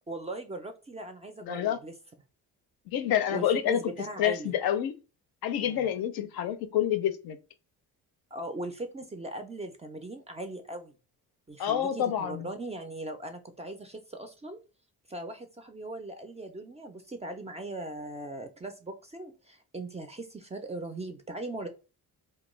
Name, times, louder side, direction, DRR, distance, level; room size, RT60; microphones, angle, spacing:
voice 1, 0.1-1.9 3.3-4.5 5.6-5.9 8.3-10.9 11.5-14.6 15.1-21.7, right 2 dB, 20° right, 0.3 m, -39 dB
voice 2, 1.4-1.8 2.9-3.8 4.2-4.9 5.4-7.4 11.6-12.5, left 10 dB, 65° left, 0.5 m, -28 dB
2.2 x 2.2 x 3.0 m
cardioid pair, 75°, 39 cm